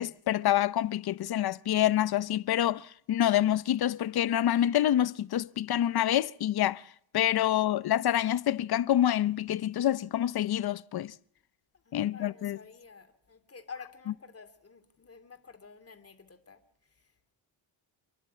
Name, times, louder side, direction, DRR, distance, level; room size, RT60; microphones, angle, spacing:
voice 1, 0.0-6.8 7.1-11.1 11.9-12.6, left 12 dB, 55° left, 0.7 m, -27 dB
voice 2, 11.8-17.1, left 5 dB, 30° left, 2.7 m, -50 dB
28.5 x 11.0 x 8.3 m
cardioid pair, 115°, 47 cm